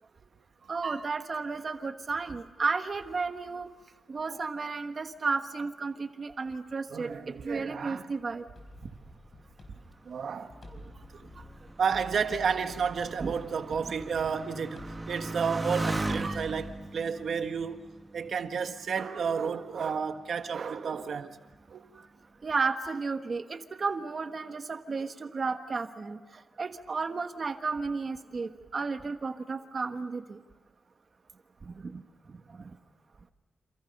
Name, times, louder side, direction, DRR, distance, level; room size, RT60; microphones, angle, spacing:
voice 1, 0.7-3.7 4.1-7.1 7.4-8.4 10.7-10.8 13.2-13.3 13.8-14.0 16.2-16.4 22.4-26.2 26.6-30.4 31.6-32.0 32.3-32.7, right 4 dB, 35° right, 1.4 m, -33 dB
voice 2, 6.9-8.1 10.0-10.5 11.2-11.3 11.8-17.8 18.1-21.3 21.7-21.8, right 6 dB, 60° right, 1.5 m, -31 dB
sound 1, 8.6-16.8, left 2 dB, 40° left, 4.8 m, -50 dB
Motorcycle, 10.0-19.0 19.7-20.3, right 2 dB, 15° right, 1.0 m, -38 dB
28.0 x 28.0 x 5.4 m
wide cardioid pair, 175°, 0 cm